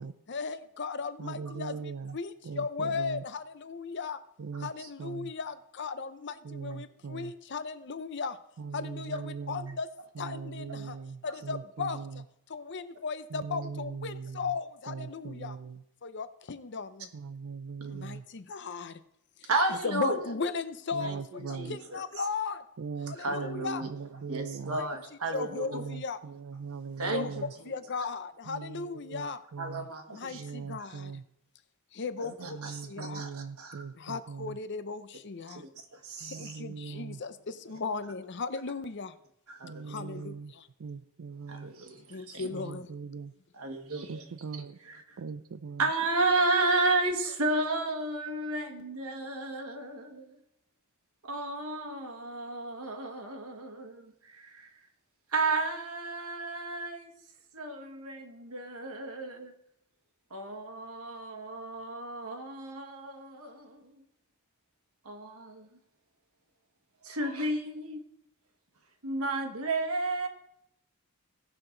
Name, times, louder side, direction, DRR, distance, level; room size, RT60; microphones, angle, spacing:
voice 1, 0.3-4.2 4.6-8.4 8.7-9.9 10.2-11.0 11.2-15.6 16.0-17.1 17.9-19.0 19.4-22.6 23.0-23.8 24.6-24.9 25.3-26.2 27.1-27.4 27.6-29.4 30.1-31.2 31.9-33.2 34.0-35.6 36.2-39.2 39.9-40.7 42.1-43.0, left 4 dB, 50° left, 12 dB, 0.6 m, -37 dB
voice 2, 1.2-2.2 2.4-3.2 4.4-4.7 5.0-5.3 6.4-7.3 8.6-9.8 10.2-12.2 13.3-14.5 14.9-15.8 17.1-18.2 20.9-21.8 22.8-24.8 25.7-27.5 28.5-29.9 30.3-31.2 32.5-34.6 36.2-37.2 39.6-40.5 40.8-41.7 42.5-43.3 44.1-44.8 45.2-45.8, right 5 dB, 65° right, 14 dB, 0.4 m, -40 dB
voice 3, 4.5-4.9 10.7-10.8 17.8-18.0 19.5-20.2 21.0-22.0 23.1-23.9 24.3-25.8 26.8-27.5 29.6-30.4 32.2-33.9 35.5-36.6 39.5-40.2 41.5-42.5 43.5-45.2 45.8-50.4 51.2-54.8 55.3-57.1 57.5-59.5 60.3-64.0 65.0-65.7 67.0-68.1 69.0-70.3, right 2 dB, 80° right, 3 dB, 1.5 m, -33 dB
17.0 x 5.8 x 3.9 m, 0.77 s
head